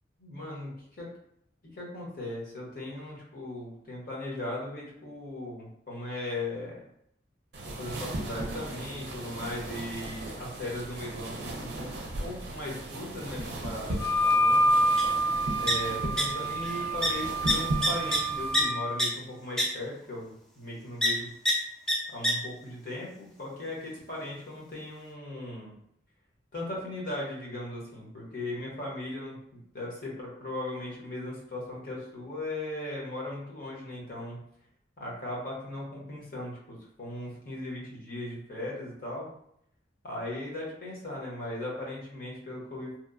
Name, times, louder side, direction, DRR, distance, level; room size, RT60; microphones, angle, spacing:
voice 1, 0.2-1.1 1.7-6.8 7.7-11.9 12.2-14.7 15.6-21.3 22.1-25.7 26.5-29.4 29.7-34.4 35.0-39.3 40.0-43.0, left 1 dB, 50° left, -4 dB, 0.8 m, -38 dB
sound 1, 7.5-18.7, right 1 dB, 60° right, 0.5 m, -37 dB
Wind instrument woodwind instrument, 14.0-18.9, equal, 80° left, 1.0 m, -27 dB
sound 2, 15.0-15.1 15.3-16.2 16.5-16.7 17.0-17.1 17.5-18.6 19.0-19.1 19.6-19.7 21.0-21.1 21.5-21.6 21.9-22.0 22.2-22.3, equal, 5° left, 0.4 m, -25 dB
2.8 x 2.0 x 2.4 m, 0.72 s
head